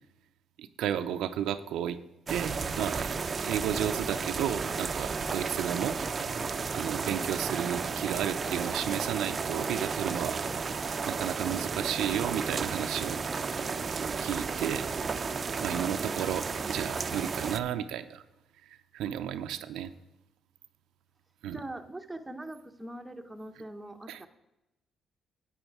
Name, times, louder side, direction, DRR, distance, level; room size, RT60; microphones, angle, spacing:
voice 1, 0.6-2.0 2.3-6.0 6.7-10.4 11.1-13.2 14.2-14.9 15.6-18.2 18.9-19.9 21.4-21.6 24.1-24.2, right 10 dB, 85° right, 9 dB, 0.5 m, -33 dB
sound 1, 2.3-17.6, right 5 dB, 40° right, 0.5 m, -33 dB
voice 2, 15.7-16.2 21.5-24.3, right 1 dB, 10° right, 5 dB, 0.9 m, -42 dB
9.2 x 8.7 x 4.7 m, 0.91 s
cardioid pair, 90°, 0 cm